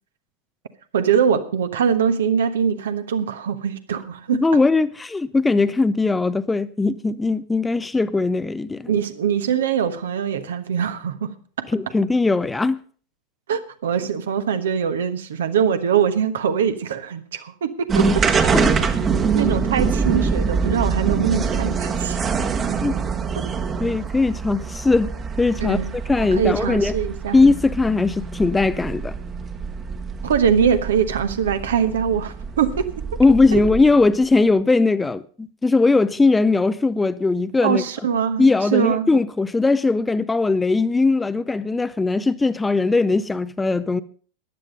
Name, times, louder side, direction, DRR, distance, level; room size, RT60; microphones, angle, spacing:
voice 1, 0.9-4.4 8.9-11.7 13.5-18.1 19.3-22.2 25.6-25.9 26.2-27.4 30.2-32.9 33.5-33.6 37.6-38.5 38.7-39.1, right 7 dB, 65° right, 1.2 m, -22 dB
voice 2, 4.3-8.9 11.7-12.8 18.5-18.7 22.8-22.9 23.8-25.8 26.1-26.9 27.3-29.2 33.2-37.8 38.4-44.0, left 3 dB, 10° left, 0.6 m, -19 dB
sound 1, 17.9-34.1, right 5 dB, 25° right, 1.4 m, -25 dB
14.5 x 10.5 x 5.2 m
figure-of-eight pair, 85°, 0 cm